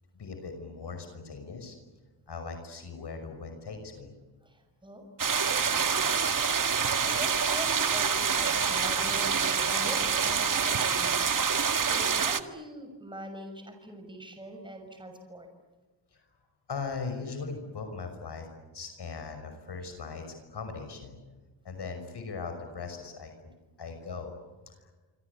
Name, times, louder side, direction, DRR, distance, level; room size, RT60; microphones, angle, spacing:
voice 1, 0.2-1.8 2.3-4.1 16.1-16.3 16.7-18.5 18.7-21.2 21.6-23.5 23.8-24.3 24.8-24.9, left 4 dB, 55° left, 6 dB, 6.0 m, -39 dB
voice 2, 4.4-5.0 5.8-5.9 6.5-15.5, right 1 dB, 10° right, 5 dB, 6.3 m, -43 dB
sound 1, 5.2-12.4, right 6 dB, 40° right, 1.9 m, -26 dB
26.5 x 26.0 x 8.4 m, 1.3 s
cardioid pair, 90°, 48 cm